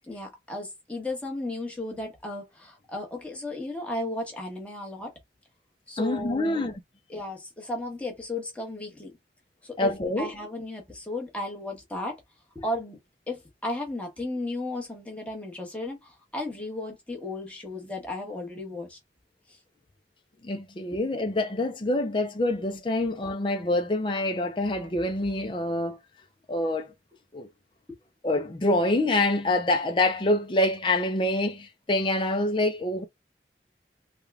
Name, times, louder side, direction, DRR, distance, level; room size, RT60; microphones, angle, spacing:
voice 1, 0.1-5.1 5.9-6.6 7.1-9.1 9.6-12.2 12.5-13.0 13.3-19.0 19.5-19.6 20.9-21.0, left 2 dB, 5° left, 1.1 m, -35 dB
voice 2, 6.0-6.7 9.8-10.3 20.4-26.0 26.5-26.9 27.3-27.5 28.2-33.0, left 1 dB, 25° left, 0.4 m, -26 dB
3.5 x 2.3 x 3.4 m
head